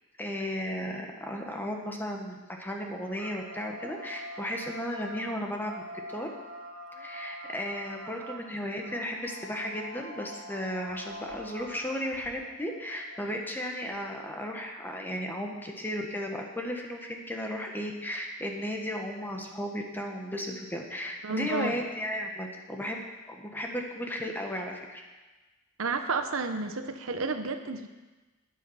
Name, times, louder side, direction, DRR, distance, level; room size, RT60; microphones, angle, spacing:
voice 1, 0.2-5.8 6.1-6.3 7.0-23.0 23.3-25.0, equal, 10° left, 1 dB, 1.4 m, -35 dB
sound 1, 3.2-14.6, equal, 90° right, 1.3 m, -45 dB
voice 2, 21.2-21.7 25.8-27.9, right 3 dB, 65° right, 7 dB, 0.9 m, -31 dB
12.0 x 9.7 x 5.6 m, 1.2 s
head